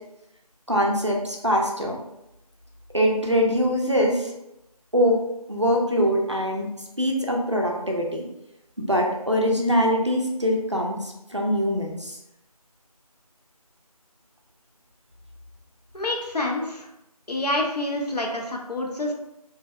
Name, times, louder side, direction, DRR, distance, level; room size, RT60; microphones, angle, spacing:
voice 1, 0.7-2.0 2.9-4.3 4.9-5.2 5.5-6.7 7.0-8.3 8.8-12.2, equal, 50° right, 0 dB, 0.4 m, -23 dB
voice 2, 15.9-16.9 17.3-19.1, left 1 dB, 85° left, 1 dB, 0.6 m, -27 dB
2.6 x 2.0 x 2.3 m, 0.86 s
figure-of-eight pair, 180°, 20 cm